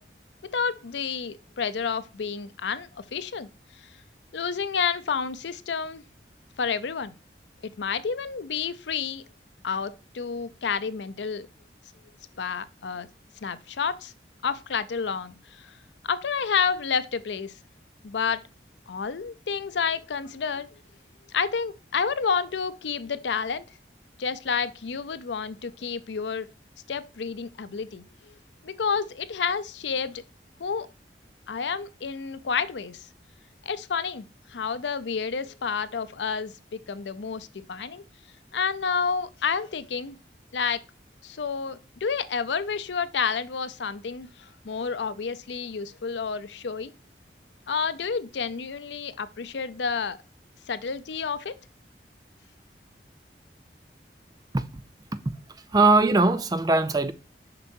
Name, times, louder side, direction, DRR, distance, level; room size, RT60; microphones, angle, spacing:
voice 1, 0.5-3.5 4.3-6.0 6.6-7.1 7.8-9.2 9.6-11.5 12.4-13.1 13.4-14.1 14.4-15.4 16.0-17.5 18.0-18.4 18.9-20.7 21.3-23.6 24.2-26.5 26.9-28.0 28.6-30.2 30.6-30.9 31.5-33.1 33.7-38.0 38.5-40.2 40.5-40.8 41.2-46.9 47.7-50.2 50.7-51.6, left 6 dB, 90° left, 0.6 m, -29 dB
voice 2, 55.7-57.1, right 3 dB, 20° right, 0.4 m, -21 dB
6.8 x 5.3 x 2.7 m
head